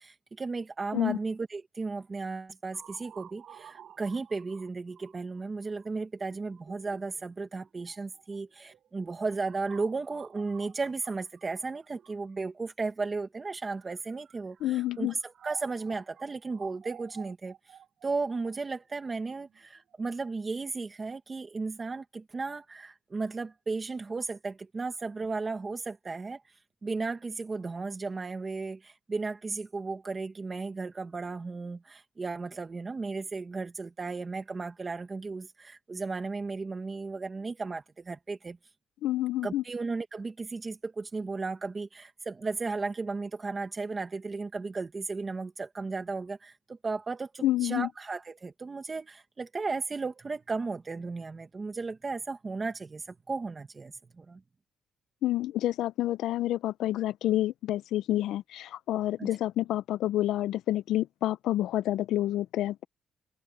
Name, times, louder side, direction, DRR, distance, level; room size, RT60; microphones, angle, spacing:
voice 1, 0.0-17.8 18.0-26.4 26.8-38.6 39.4-54.4 59.2-59.3, right 3 dB, 25° right, 1.3 m, -35 dB
sound 1, 2.7-12.6 13.3-20.3, right 9 dB, 60° right, 6.7 m, -53 dB
voice 2, 14.6-15.1 39.0-39.6 47.4-47.9 55.2-62.9, left 14 dB, 85° left, 0.5 m, -28 dB
cardioid pair, 135°, 0 cm